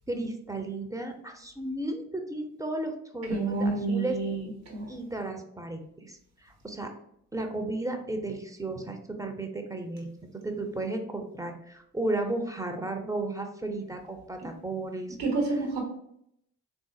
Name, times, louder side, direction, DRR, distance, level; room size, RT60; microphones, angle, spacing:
voice 1, 0.1-4.2 4.9-6.9 7.3-10.1 10.3-15.2, right 2 dB, 10° right, 5 dB, 0.4 m, -34 dB
voice 2, 3.3-4.9 15.2-15.8, right 3 dB, 80° right, 1 dB, 1.0 m, -29 dB
3.6 x 2.4 x 2.5 m, 0.73 s
hypercardioid pair, 45°, 45 cm